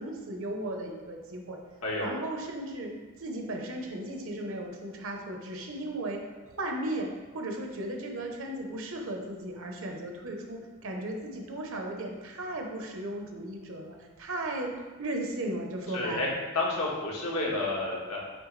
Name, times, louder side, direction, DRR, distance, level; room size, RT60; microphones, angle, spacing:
voice 1, 0.0-1.6 2.0-2.9 3.2-6.2 6.4-7.1 7.3-14.7 15.0-16.3, right 1 dB, 65° right, 2 dB, 0.9 m, -36 dB
voice 2, 1.8-2.1 15.9-16.3 16.5-18.2, left 2 dB, 80° left, -3 dB, 1.4 m, -30 dB
8.8 x 3.5 x 3.3 m, 1.3 s
head